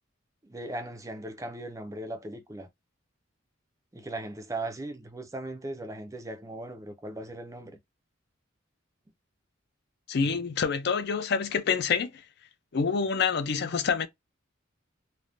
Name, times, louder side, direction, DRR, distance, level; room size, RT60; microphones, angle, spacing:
voice 1, 0.4-2.7 3.9-7.8, right 2 dB, 15° right, 0.4 m, -38 dB
voice 2, 10.1-12.1 12.7-14.1, left 6 dB, 55° left, 0.5 m, -27 dB
3.3 x 2.1 x 2.5 m
head